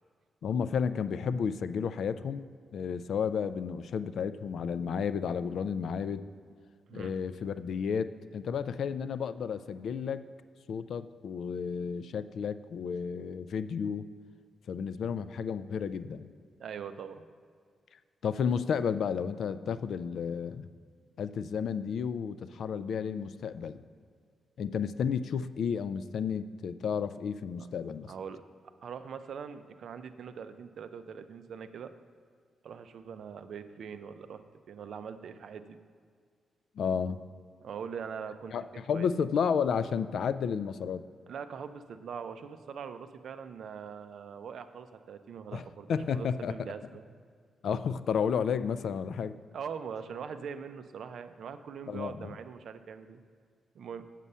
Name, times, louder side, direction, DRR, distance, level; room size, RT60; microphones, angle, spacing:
voice 1, 0.4-2.5 2.7-6.2 6.9-10.2 10.7-14.0 14.7-16.3 18.2-20.7 21.2-23.8 24.6-28.1 36.8-37.2 38.5-41.0 45.5-45.6 45.9-46.5 47.6-49.4 51.9-52.4, left 6 dB, 60° left, 13 dB, 0.3 m, -32 dB
voice 2, 16.6-17.2 28.1-28.4 28.8-31.9 32.6-35.8 37.6-38.5 38.9-39.1 41.3-47.1 49.5-53.2 53.7-54.0, right 7 dB, 60° right, 10 dB, 0.5 m, -42 dB
8.2 x 7.5 x 5.4 m, 2.1 s
wide cardioid pair, 150°, 0 cm